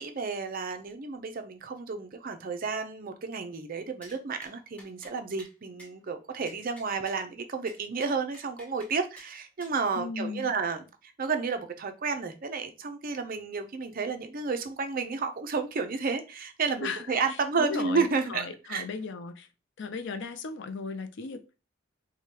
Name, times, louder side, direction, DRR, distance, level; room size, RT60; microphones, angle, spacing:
voice 1, 0.0-18.8, right 4 dB, 45° right, 0.5 m, -31 dB
sound 1, 4.0-4.2 4.4-4.5 4.8-5.1 5.4-5.5 5.8-5.9 6.5-7.2 7.7-8.9 9.2-9.3 9.6-9.8, equal, 5° left, 1.1 m, -51 dB
voice 2, 10.0-10.5 16.8-17.0 17.6-18.1 18.3-19.5 19.8-21.6, left 4 dB, 60° left, 0.5 m, -36 dB
4.7 x 2.2 x 2.8 m
head